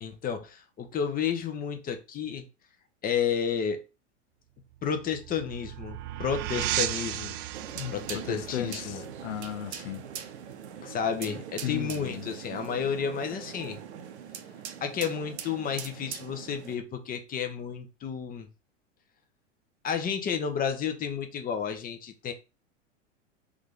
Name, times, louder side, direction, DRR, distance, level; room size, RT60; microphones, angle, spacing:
voice 1, 0.0-2.5 3.0-3.8 4.8-7.3 7.9-9.0 10.8-13.8 14.8-18.5 19.8-22.3, left 7 dB, 25° left, 0.9 m, -31 dB
sound 1, 4.7-10.1, right 13 dB, 45° right, 0.5 m, -35 dB
sound 2, 7.5-16.7, right 8 dB, 60° right, 0.9 m, -41 dB
voice 2, 7.7-10.0 11.6-12.3, left 11 dB, 70° left, 0.5 m, -36 dB
3.7 x 3.2 x 3.7 m
hypercardioid pair, 95°, 37 cm